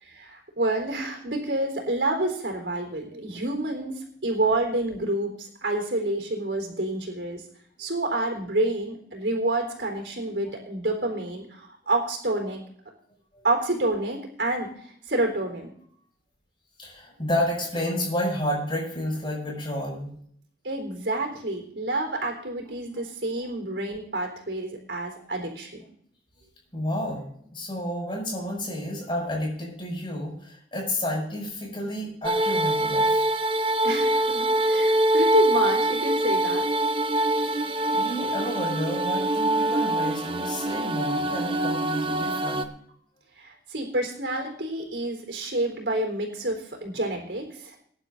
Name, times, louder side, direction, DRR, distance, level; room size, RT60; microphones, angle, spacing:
voice 1, 0.0-7.4 7.8-12.6 13.4-15.7 20.6-25.8 33.8-36.7 43.4-47.8, right 2 dB, 80° right, 3 dB, 3.8 m, -28 dB
voice 2, 16.8-20.1 26.7-33.2 37.4-37.7 37.9-42.7, left 1 dB, 30° left, -2 dB, 6.7 m, -30 dB
sound 1, 32.2-42.7, right 1 dB, 30° right, 0.7 m, -24 dB
23.0 x 11.0 x 2.7 m, 0.64 s
head